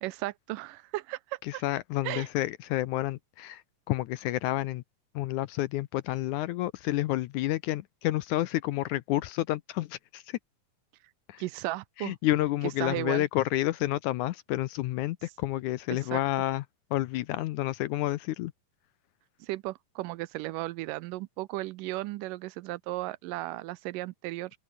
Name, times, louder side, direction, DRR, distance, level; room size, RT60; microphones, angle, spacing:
voice 1, 0.0-1.6 2.0-2.3 11.4-12.2 12.6-13.3 15.9-16.2 19.4-24.5, right 18 dB, 80° right, 2.2 m, -35 dB
voice 2, 1.6-3.6 3.9-4.8 5.2-10.2 11.3-11.4 12.0-16.6 16.9-18.5, left 16 dB, 80° left, 1.9 m, -29 dB
omnidirectional pair, 3.9 m